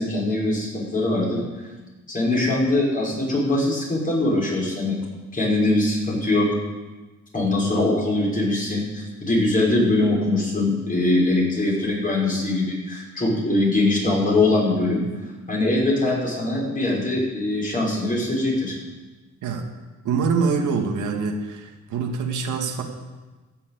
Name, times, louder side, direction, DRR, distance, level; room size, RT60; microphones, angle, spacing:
voice 1, 0.0-1.4 2.1-5.0 5.3-6.5 7.3-15.0 15.5-18.8, left 2 dB, 25° left, -3 dB, 6.1 m, -22 dB
voice 2, 20.0-22.8, right 5 dB, 75° right, 2 dB, 2.1 m, -24 dB
15.5 x 7.1 x 8.5 m, 1.2 s
cardioid pair, 90°, 30 cm